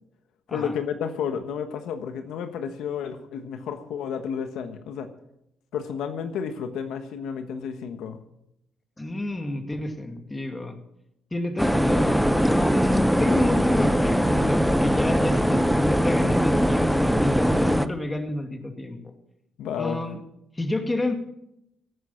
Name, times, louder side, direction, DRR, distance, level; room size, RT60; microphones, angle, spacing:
voice 1, 0.5-5.1 5.7-8.2 19.6-20.0, left 7 dB, 85° left, 8 dB, 1.3 m, -31 dB
voice 2, 9.0-10.7 11.3-19.1 19.8-20.2 20.5-21.2, left 1 dB, 15° left, 5 dB, 2.4 m, -29 dB
sound 1, 11.6-17.9, equal, ahead, 0.8 m, -21 dB
17.0 x 9.6 x 5.9 m, 0.81 s
cardioid pair, 90°, 0 cm